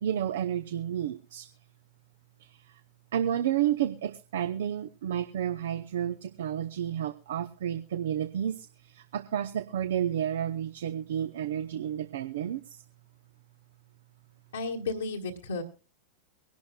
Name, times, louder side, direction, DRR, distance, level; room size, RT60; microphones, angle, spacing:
voice 1, 0.0-1.5 2.4-2.8 3.1-12.8, right 10 dB, 65° right, 12 dB, 0.6 m, -31 dB
voice 2, 14.5-15.6, left 3 dB, 80° left, -3 dB, 1.4 m, -33 dB
23.5 x 11.5 x 2.3 m, 0.33 s
figure-of-eight pair, 90°, 0 cm